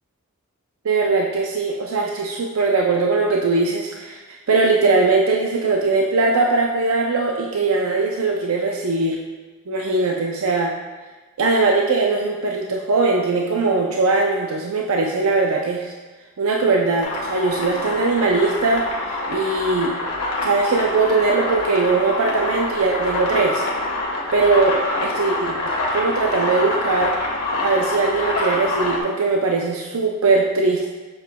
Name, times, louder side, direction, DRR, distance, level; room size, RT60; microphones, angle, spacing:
voice 1, 0.8-4.2 4.5-9.2 9.7-10.7 11.4-15.9 16.4-19.9 20.4-23.6 24.3-25.5 25.9-27.1 27.6-30.9, right 3 dB, 65° right, 0 dB, 0.5 m, -20 dB
sound 1, 17.0-29.0, left 2 dB, 85° left, 1.4 m, -25 dB
7.4 x 7.1 x 2.3 m, 1.3 s
head